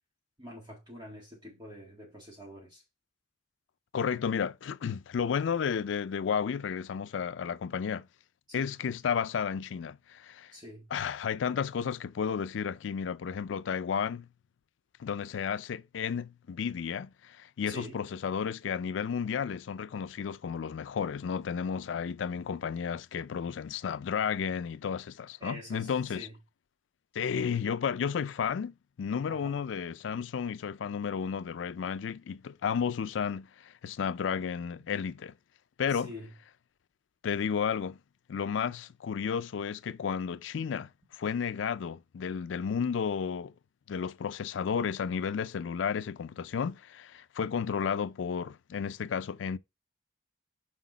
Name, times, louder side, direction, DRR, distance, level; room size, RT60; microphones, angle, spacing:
voice 1, 0.4-2.8 8.5-8.7 10.5-10.9 17.7-18.0 25.4-26.4 29.3-29.6 35.9-36.3, equal, 25° right, 1.9 m, -46 dB
voice 2, 3.9-8.1 8.5-10.5 10.9-14.3 15.0-26.3 27.1-35.3 35.8-36.1 37.2-38.0 38.3-43.5 43.9-49.6, left 7 dB, 85° left, 0.4 m, -32 dB
6.2 x 4.5 x 4.0 m
head